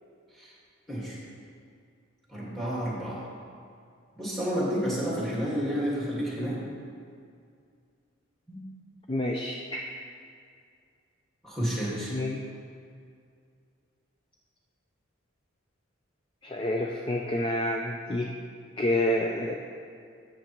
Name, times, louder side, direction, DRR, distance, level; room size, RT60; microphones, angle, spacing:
voice 1, 2.3-3.2 4.2-6.6 8.5-8.6 11.4-12.1, equal, ahead, -6 dB, 1.8 m, -30 dB
voice 2, 9.1-9.9 12.1-12.4 16.4-18.3 18.8-19.5, left 1 dB, 25° left, 1 dB, 0.3 m, -28 dB
13.5 x 6.6 x 3.0 m, 2.3 s
head